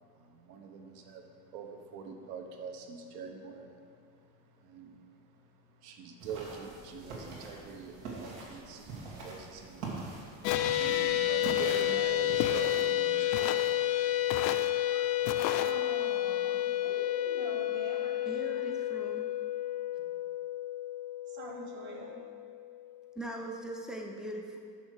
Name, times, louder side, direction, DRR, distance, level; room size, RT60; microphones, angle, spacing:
voice 1, 0.1-3.8 4.4-5.4 5.8-15.1, right 5 dB, 70° right, 4 dB, 1.1 m, -45 dB
sound 1, 6.2-12.9, right 3 dB, 85° right, 2.1 m, -44 dB
sound 2, 10.4-22.8, left 13 dB, 85° left, 0.8 m, -31 dB
Walk footsteps, 10.4-10.9 11.4-11.9 12.4-12.9 13.3-13.7 14.3-14.7 15.2-15.7, left 11 dB, 60° left, 0.5 m, -36 dB
voice 2, 14.8-18.3 18.5-18.6 21.3-22.2, right 2 dB, 30° right, -1 dB, 1.4 m, -45 dB
voice 3, 18.3-19.3 20.0-20.1 23.2-24.6, right 1 dB, ahead, 1 dB, 0.4 m, -40 dB
6.2 x 6.2 x 6.3 m, 2.3 s
cardioid pair, 165°, 40 cm